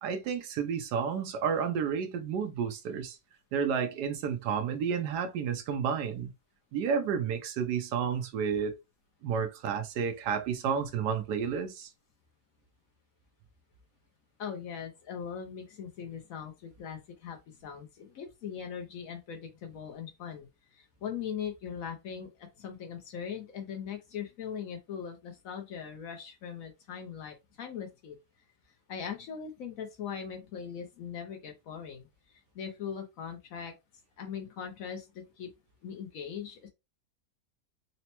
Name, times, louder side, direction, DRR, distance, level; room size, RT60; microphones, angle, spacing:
voice 1, 0.0-3.2 3.5-6.3 6.7-8.8 9.2-11.9, right 7 dB, 90° right, 1.3 m, -31 dB
voice 2, 14.4-28.2 28.9-33.7 34.2-35.5 35.8-36.7, left 7 dB, 65° left, 1.0 m, -40 dB
4.1 x 2.1 x 2.9 m
omnidirectional pair, 1.7 m